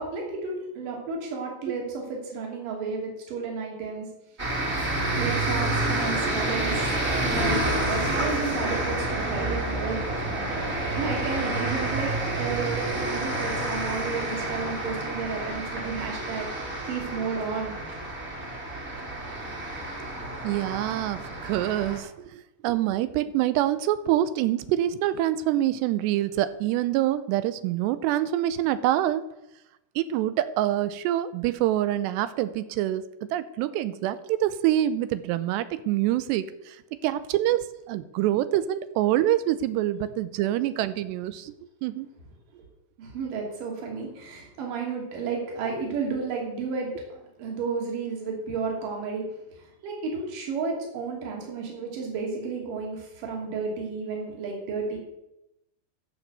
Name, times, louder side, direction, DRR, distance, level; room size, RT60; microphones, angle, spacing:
voice 1, 0.0-4.1 4.5-6.9 7.2-10.0 10.6-16.5 16.9-17.8 43.0-49.3 49.8-55.0, right 5 dB, 50° right, -1 dB, 4.1 m, -32 dB
sound 1, 4.4-22.0, right 1 dB, 20° right, 2.1 m, -29 dB
voice 2, 20.4-29.2 30.0-41.5 41.8-42.1, right 13 dB, 85° right, 13 dB, 2.7 m, -26 dB
12.5 x 6.2 x 7.8 m, 0.88 s
omnidirectional pair, 5.0 m